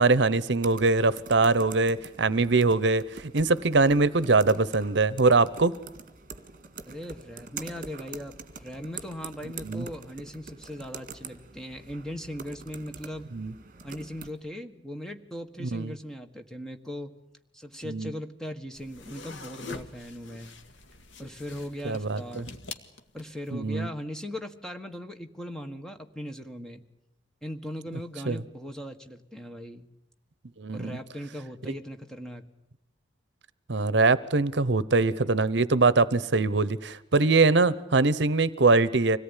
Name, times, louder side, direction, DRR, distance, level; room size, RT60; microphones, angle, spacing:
voice 1, 0.0-5.7 9.6-9.9 13.3-13.5 15.6-15.9 17.8-18.1 21.8-22.4 23.5-23.9 28.3-28.4 30.6-31.0 33.7-39.2, right 3 dB, 65° right, 18 dB, 0.8 m, -23 dB
sound 1, 0.6-14.3, right 5 dB, 45° right, 1.9 m, -45 dB
voice 2, 6.9-13.3 13.8-17.1 17.5-20.5 21.2-22.5 23.1-26.8 27.4-29.9 30.7-32.4, equal, 5° left, 5 dB, 1.5 m, -39 dB
sound 2, 18.8-23.5, left 3 dB, 75° left, 1.9 m, -44 dB
25.5 x 18.0 x 9.9 m, 0.87 s
head